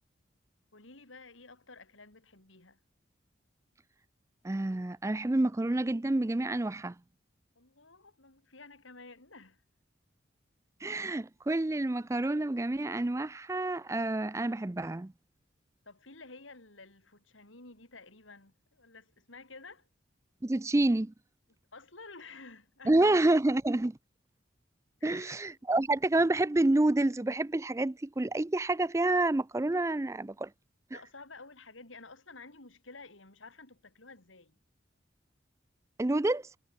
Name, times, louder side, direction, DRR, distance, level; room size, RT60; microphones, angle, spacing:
voice 1, 0.7-2.8 7.6-9.6 15.9-19.9 21.7-23.1 25.0-25.4 30.9-34.5, left 3 dB, 90° left, 4.5 m, -52 dB
voice 2, 4.4-6.9 10.8-15.1 20.4-21.1 22.9-24.0 25.0-30.5 36.0-36.5, right 2 dB, 15° right, 0.4 m, -28 dB
head